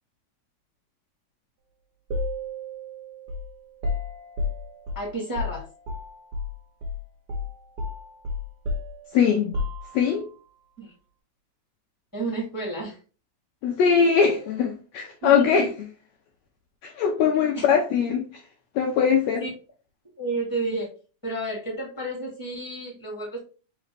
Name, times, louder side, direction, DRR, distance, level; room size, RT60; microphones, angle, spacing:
sound 1, 2.1-6.5 6.8-7.0 7.3-10.3, left 3 dB, 85° right, 0.8 m, -32 dB
voice 1, 4.9-5.7 10.8-10.9 12.1-13.0 15.2-15.7 17.5-17.7 19.4-19.5 20.2-20.9 21.2-23.4, right 2 dB, 5° left, 1.9 m, -31 dB
voice 2, 9.1-9.6 9.9-10.3 13.6-15.7 16.8-18.3 18.8-19.4, left 6 dB, 75° left, 1.7 m, -21 dB
4.3 x 3.8 x 3.2 m
omnidirectional pair, 3.6 m